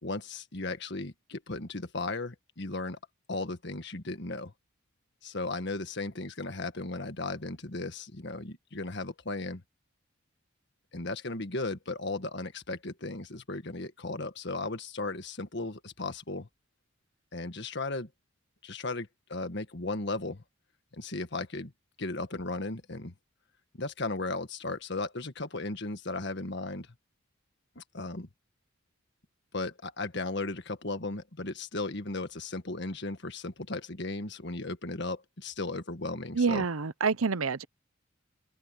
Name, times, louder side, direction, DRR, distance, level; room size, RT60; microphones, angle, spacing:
voice 1, 0.0-3.0 3.3-4.5 5.2-9.6 10.9-16.5 17.3-18.1 18.6-20.4 20.9-21.7 22.0-23.1 23.7-26.9 27.7-28.3 29.5-36.6, left 2 dB, 55° left, 1.7 m, -36 dB
voice 2, 36.3-37.6, right 5 dB, 85° right, 0.8 m, -27 dB
open air
head